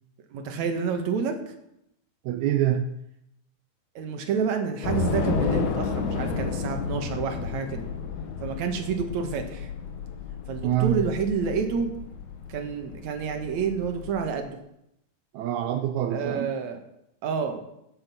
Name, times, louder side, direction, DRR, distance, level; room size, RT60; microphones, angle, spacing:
voice 1, 0.3-1.5 4.0-7.9 8.4-9.7 10.5-11.9 12.5-14.6 16.1-16.8 17.2-17.6, right 6 dB, 60° right, 5 dB, 2.4 m, -29 dB
voice 2, 2.2-3.0 10.6-11.0 15.3-16.5, right 11 dB, 85° right, 8 dB, 1.6 m, -25 dB
Train / Subway metro underground, 4.8-14.3, left 6 dB, 65° left, 2.4 m, -32 dB
14.0 x 8.9 x 6.0 m, 0.81 s
omnidirectional pair, 4.2 m